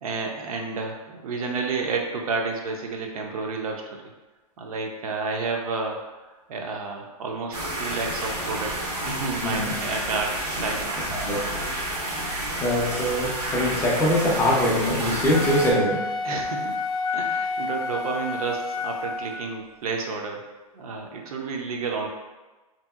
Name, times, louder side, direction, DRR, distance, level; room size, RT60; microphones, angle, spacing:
voice 1, 0.0-4.0 4.6-6.0 6.3-8.8 9.0-11.0 16.2-16.8 17.1-20.5 20.7-22.1, right 4 dB, 65° right, 2 dB, 0.5 m, -30 dB
sound 1, 7.5-15.7, right 1 dB, 85° right, 0.9 m, -30 dB
voice 2, 9.4-9.8 11.3-11.4 12.2-12.3 12.6-16.1, left 1 dB, 10° left, -5 dB, 0.4 m, -23 dB
Wind instrument woodwind instrument, 15.2-19.6, left 3 dB, 70° left, 0.4 m, -29 dB
2.7 x 2.6 x 2.4 m, 1.2 s
hypercardioid pair, 140°, 20 cm